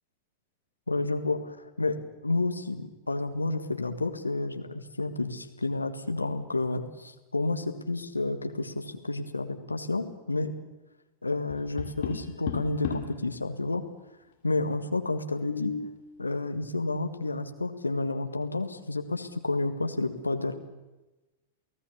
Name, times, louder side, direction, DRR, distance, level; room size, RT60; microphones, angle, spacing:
voice 1, 0.9-10.6 11.2-13.8 14.4-15.7 16.2-20.6, left 2 dB, 80° left, 7 dB, 1.7 m, -30 dB
Tap, 11.5-13.2 15.2-15.9, left 7 dB, 50° left, 3.3 m, -35 dB
29.0 x 17.0 x 7.1 m, 1.1 s
figure-of-eight pair, 90°, 0 cm